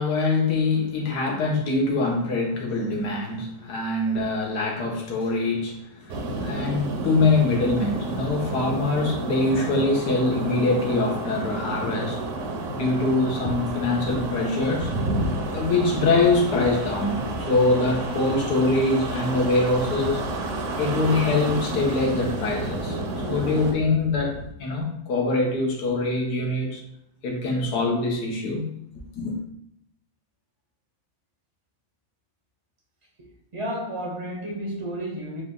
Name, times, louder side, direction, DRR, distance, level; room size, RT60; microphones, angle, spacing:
voice 1, 0.0-12.2 12.7-14.9 15.5-20.2 20.8-23.0 23.3-26.8 27.2-28.7 29.1-29.4, left 3 dB, 85° left, 1.5 m, -24 dB
sound 1, 6.1-23.7, right 2 dB, 60° right, 0.9 m, -30 dB
sound 2, 14.8-24.5, left 2 dB, 60° left, 0.9 m, -40 dB
voice 2, 33.5-35.4, equal, 35° right, 0.5 m, -32 dB
4.9 x 2.4 x 3.6 m
omnidirectional pair, 1.7 m